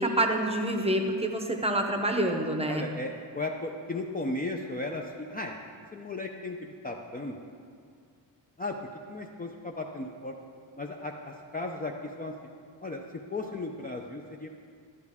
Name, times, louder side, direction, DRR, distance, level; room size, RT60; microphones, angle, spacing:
voice 1, 0.0-2.9, right 1 dB, 15° right, 4 dB, 0.7 m, -27 dB
voice 2, 2.7-5.5 5.9-7.4 8.6-8.8 9.1-10.3 10.8-12.3 12.8-14.5, left 2 dB, 20° left, 1 dB, 0.4 m, -35 dB
12.0 x 10.5 x 3.5 m, 2.3 s
wide cardioid pair, 155°, 45 cm